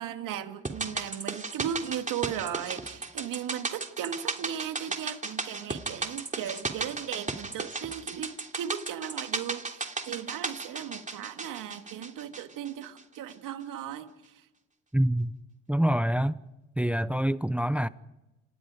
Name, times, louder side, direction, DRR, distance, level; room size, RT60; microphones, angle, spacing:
voice 1, 0.0-14.1, right 10 dB, 70° right, 2.5 m, -37 dB
sound 1, 0.6-13.0 13.3-13.4, right 3 dB, 20° right, 3.2 m, -35 dB
voice 2, 14.9-15.3 15.7-16.4 16.8-17.9, right 1 dB, 5° right, 0.9 m, -25 dB
29.5 x 26.5 x 5.2 m
supercardioid pair, 65°, 34 cm